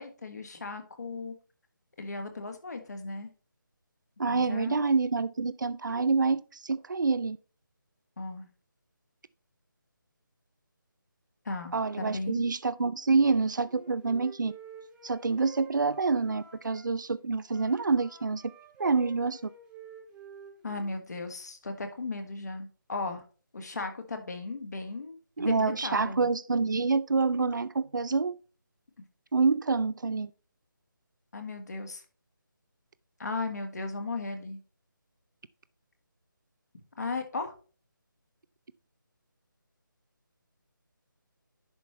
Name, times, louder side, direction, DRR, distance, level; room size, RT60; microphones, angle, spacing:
voice 1, 0.0-1.3 2.0-3.3 4.3-4.8 8.2-8.5 11.4-12.5 20.6-23.2 23.5-26.3 31.3-32.0 33.2-34.6 37.0-37.5, left 3 dB, 55° left, 1.7 m, -36 dB
voice 2, 4.2-7.4 11.7-14.5 15.0-18.4 18.8-19.4 25.4-28.3 29.3-30.3, right 4 dB, 60° right, 0.5 m, -27 dB
Wind instrument woodwind instrument, 13.6-16.8 17.4-21.0, right 5 dB, 5° right, 1.3 m, -50 dB
10.5 x 5.3 x 3.2 m
figure-of-eight pair, 155°, 11 cm